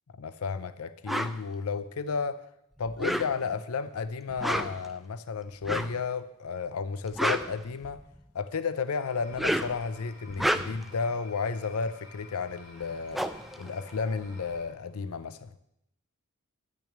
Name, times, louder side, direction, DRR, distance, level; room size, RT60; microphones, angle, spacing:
voice 1, 0.2-2.4 2.8-8.0 8.3-13.2 13.6-15.5, left 5 dB, 85° left, 0.6 m, -32 dB
sound 1, 1.1-1.4 2.9-3.6 4.3-4.9 5.6-6.0 6.9-8.2 9.2-9.8 10.3-10.9 12.5-12.6 12.8-14.5, equal, ahead, 0.4 m, -30 dB
sound 2, 8.9-14.7, left 2 dB, 55° left, 4.2 m, -53 dB
10.5 x 6.2 x 8.2 m
head